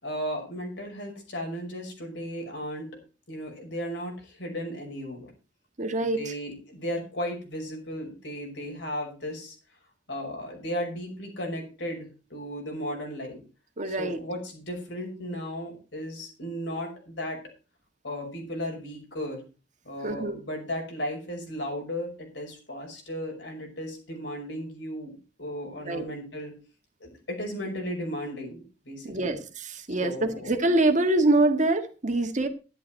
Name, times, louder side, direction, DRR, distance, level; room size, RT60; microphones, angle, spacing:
voice 1, 0.0-2.9 3.3-5.3 6.0-9.5 10.1-13.4 13.8-17.4 18.0-19.4 19.8-26.5 27.0-29.4 30.0-30.6, equal, 75° left, 5.8 m, -35 dB
voice 2, 5.8-6.3 13.8-14.2 20.0-20.4 25.8-26.0 29.0-32.5, right 2 dB, 45° right, 1.6 m, -25 dB
12.0 x 10.5 x 4.5 m
head